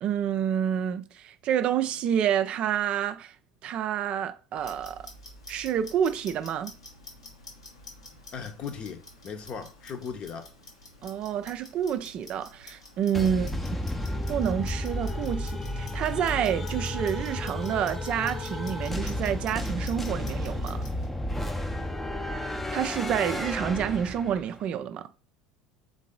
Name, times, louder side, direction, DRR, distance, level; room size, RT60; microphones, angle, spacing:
voice 1, 0.0-3.3 3.6-5.1 5.5-6.7 11.0-13.5 14.3-20.8 22.7-25.1, right 9 dB, 45° right, 0.3 m, -28 dB
Clock, 4.6-21.1, left 2 dB, 85° left, 1.0 m, -49 dB
voice 2, 8.3-10.5 13.3-13.5, left 6 dB, 40° left, 0.8 m, -38 dB
sound 1, 13.1-24.5, left 1 dB, 10° left, 0.6 m, -32 dB
3.9 x 3.7 x 3.7 m
figure-of-eight pair, 70°, 3 cm